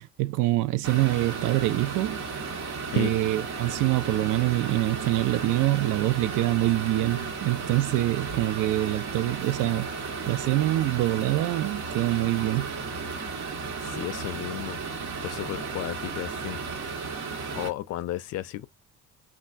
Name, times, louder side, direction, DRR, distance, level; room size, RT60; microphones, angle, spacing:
voice 1, 0.0-2.2 3.0-9.9 10.3-12.7, right 17 dB, 85° right, 0.5 m, -25 dB
sound 1, 0.8-17.7, right 4 dB, 65° right, 1.2 m, -34 dB
voice 2, 13.8-16.6 17.5-18.7, left 14 dB, 55° left, 0.4 m, -34 dB
3.3 x 2.4 x 2.5 m
cardioid pair, 170°, 30 cm